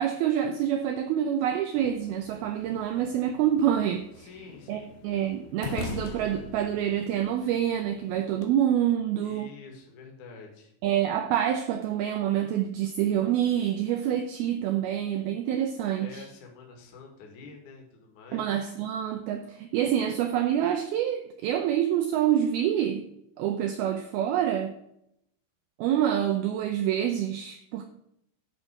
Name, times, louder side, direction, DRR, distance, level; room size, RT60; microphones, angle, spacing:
voice 1, 0.0-4.3 4.7-9.5 10.8-16.3 18.3-23.0 23.4-24.7 25.8-27.9, right 10 dB, 90° right, 6 dB, 2.1 m, -27 dB
sound 1, 1.8-8.5, left 6 dB, 75° left, 2.6 m, -43 dB
voice 2, 4.2-5.0 9.2-10.7 16.0-18.5, left 4 dB, 50° left, 1 dB, 2.7 m, -47 dB
11.0 x 4.6 x 6.3 m, 0.77 s
omnidirectional pair, 5.2 m